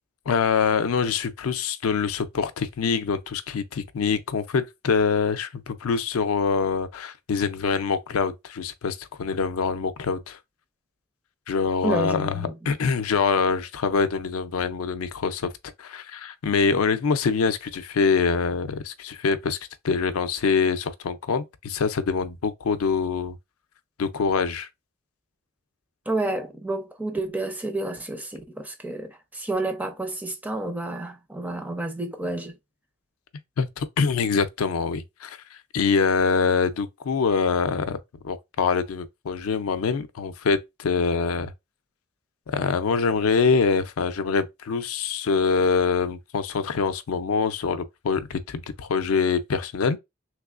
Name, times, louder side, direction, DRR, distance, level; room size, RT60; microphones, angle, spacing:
voice 1, 0.3-10.4 11.5-15.5 15.8-19.6 19.8-23.4 24.0-24.7 33.6-35.4 35.7-41.5 42.5-50.0, left 5 dB, 85° left, 0.4 m, -24 dB
voice 2, 11.8-12.5 26.1-32.5, right 2 dB, 10° right, 0.4 m, -30 dB
3.3 x 3.1 x 2.4 m
head